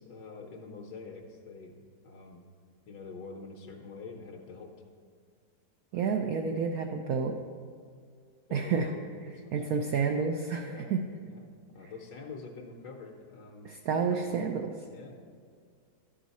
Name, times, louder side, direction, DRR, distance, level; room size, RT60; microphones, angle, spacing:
voice 1, 0.0-2.4 2.9-4.7 8.5-9.8 10.7-10.9 11.2-11.4 11.7-13.7 14.0-14.2 14.9-15.1, left 4 dB, 70° left, 0 dB, 1.3 m, -46 dB
voice 2, 5.9-7.4 8.5-8.9 9.5-11.1 13.6-14.7, right 5 dB, 70° right, 3 dB, 0.9 m, -29 dB
11.5 x 6.3 x 4.1 m, 2.1 s
omnidirectional pair, 2.0 m